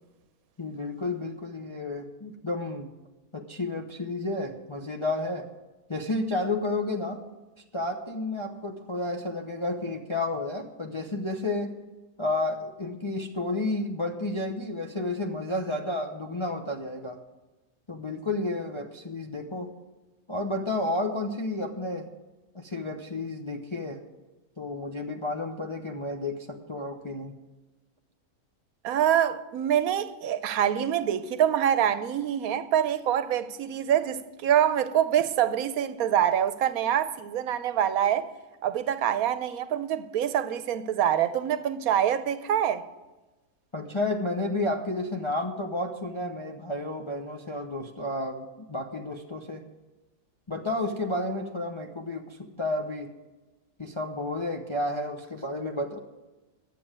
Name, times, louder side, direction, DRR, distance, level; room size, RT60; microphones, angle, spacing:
voice 1, 0.6-2.9 3.3-5.5 5.9-7.2 7.7-11.7 12.2-17.2 17.9-19.7 20.3-22.1 22.5-24.0 24.6-27.3 43.7-49.6 50.5-53.1 53.8-56.0, left 2 dB, 25° left, 0.7 m, -31 dB
voice 2, 28.8-38.3 38.6-42.9, right 10 dB, 75° right, 1.2 m, -25 dB
11.0 x 7.6 x 8.7 m
omnidirectional pair, 1.6 m